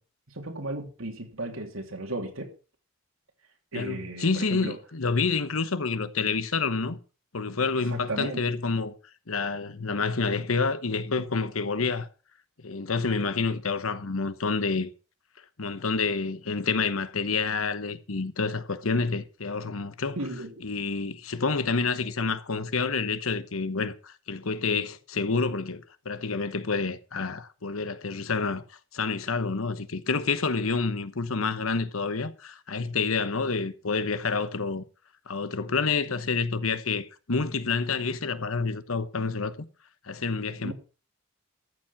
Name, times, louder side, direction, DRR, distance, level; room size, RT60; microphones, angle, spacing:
voice 1, 0.3-2.5 3.7-4.8 7.9-8.4 18.9-19.0 20.2-20.5 40.6-40.7, right 2 dB, 80° right, 2.9 m, -35 dB
voice 2, 3.7-7.0 7.3-8.9 9.3-12.1 12.6-14.9 15.6-20.2 20.6-34.8 35.3-39.5 40.0-40.7, left 4 dB, 85° left, 1.1 m, -28 dB
13.5 x 7.6 x 5.9 m
head